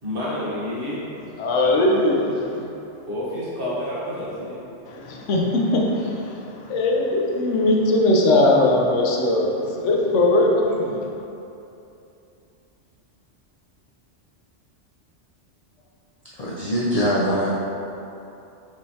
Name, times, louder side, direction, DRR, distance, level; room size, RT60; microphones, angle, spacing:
voice 1, 0.0-1.1 3.1-4.6, left 1 dB, 50° right, -8 dB, 1.3 m, -29 dB
voice 2, 1.4-2.7 4.9-6.2 6.7-11.1, left 2 dB, 85° left, -1 dB, 1.0 m, -20 dB
voice 3, 16.3-17.5, equal, 65° left, -5 dB, 0.4 m, -22 dB
5.3 x 3.2 x 2.7 m, 2.8 s
omnidirectional pair, 1.2 m